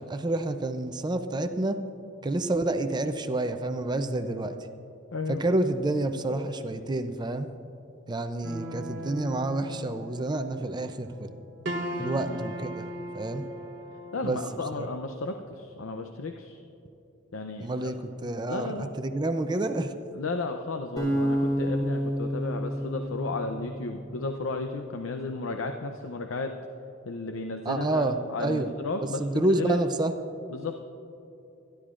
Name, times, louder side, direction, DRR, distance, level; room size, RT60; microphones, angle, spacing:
voice 1, 0.0-1.8 2.2-4.6 5.4-7.5 8.1-11.4 12.0-12.9 13.1-13.4 14.2-14.4 14.8-14.9 17.6-19.9 27.7-28.7 29.2-30.1, right 2 dB, 20° right, 8 dB, 0.5 m, -28 dB
voice 2, 5.1-5.4 12.0-12.5 14.1-16.6 17.3-17.9 18.5-18.9 20.1-26.6 27.1-29.8 30.5-30.8, left 3 dB, 85° left, 5 dB, 0.6 m, -34 dB
sound 1, 8.4-14.6, right 1 dB, 60° right, 1.0 m, -38 dB
sound 2, 21.0-24.1, equal, 20° left, 3.4 m, -29 dB
25.5 x 11.5 x 2.5 m, 2.9 s
head